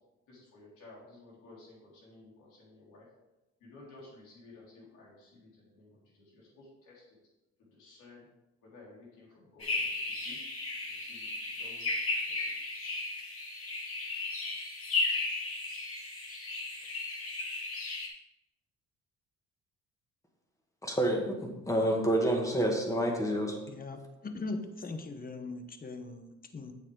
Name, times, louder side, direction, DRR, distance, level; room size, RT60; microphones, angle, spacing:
voice 1, 0.3-3.1 3.6-7.2 7.7-8.3 8.6-9.9 10.2-10.4 10.9-11.3 11.6-11.9 12.3-12.4, left 2 dB, 85° left, -4 dB, 3.5 m, -54 dB
sound 1, 9.6-18.1, left 3 dB, 50° left, 2.2 m, -35 dB
voice 2, 20.8-23.6, right 1 dB, 10° left, 1 dB, 2.0 m, -28 dB
voice 3, 23.7-26.7, left 3 dB, 30° left, 7 dB, 1.0 m, -40 dB
8.8 x 7.3 x 3.8 m, 0.99 s
cardioid pair, 90°, 30 cm